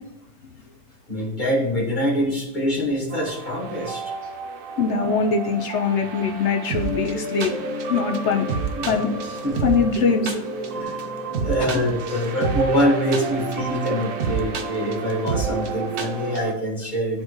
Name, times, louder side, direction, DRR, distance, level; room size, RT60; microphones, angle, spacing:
voice 1, 1.1-4.1 5.0-5.2 8.8-9.0 9.4-9.7 10.7-11.0 11.4-17.2, equal, 30° left, -3 dB, 1.8 m, -24 dB
sound 1, 3.1-16.5, right 4 dB, 70° right, 1.3 m, -29 dB
voice 2, 4.8-7.6 7.9-8.5 8.8-9.1 9.6-10.4, left 5 dB, 60° left, 4 dB, 0.7 m, -22 dB
11.5 x 4.3 x 3.1 m, 0.88 s
omnidirectional pair, 1.8 m